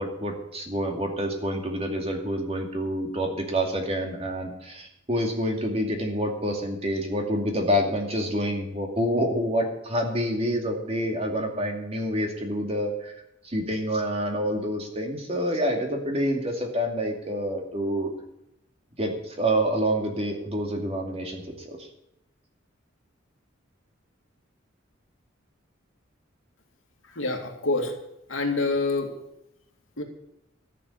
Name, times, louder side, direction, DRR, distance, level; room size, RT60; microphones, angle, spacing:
voice 1, 0.0-13.1 13.4-18.1 19.0-21.9, equal, 30° right, 2 dB, 2.4 m, -27 dB
voice 2, 27.1-27.9 28.3-29.1 30.0-30.1, left 3 dB, 80° left, 3 dB, 2.4 m, -26 dB
13.5 x 7.0 x 10.0 m, 0.86 s
head